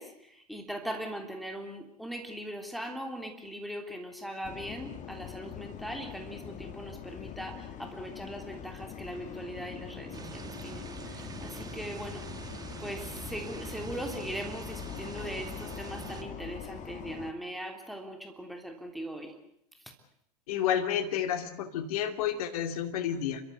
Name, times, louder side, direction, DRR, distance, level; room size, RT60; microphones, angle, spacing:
voice 1, 0.0-12.3 12.8-19.3, equal, ahead, 3 dB, 3.2 m, -40 dB
sound 1, 4.4-17.3, left 9 dB, 35° left, 1.7 m, -43 dB
sound 2, 9.1-19.4, right 11 dB, 60° right, 5.1 m, -55 dB
sound 3, 10.1-16.2, right 5 dB, 20° right, 2.1 m, -44 dB
voice 2, 20.5-23.4, left 9 dB, 65° left, 6 dB, 2.8 m, -30 dB
30.0 x 14.0 x 8.1 m, 0.76 s
hypercardioid pair, 90°, 20 cm